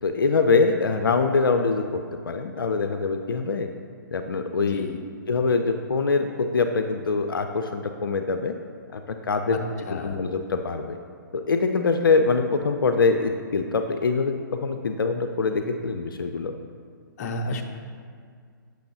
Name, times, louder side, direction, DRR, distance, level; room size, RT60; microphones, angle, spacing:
voice 1, 0.0-3.7 4.1-4.8 5.3-8.5 8.9-9.6 10.0-11.0 11.3-16.5, left 4 dB, 85° left, 6 dB, 0.4 m, -24 dB
voice 2, 9.9-10.2 17.2-17.6, left 2 dB, 45° left, 3 dB, 0.7 m, -31 dB
8.2 x 6.1 x 2.6 m, 2.1 s
hypercardioid pair, 130°, 11 cm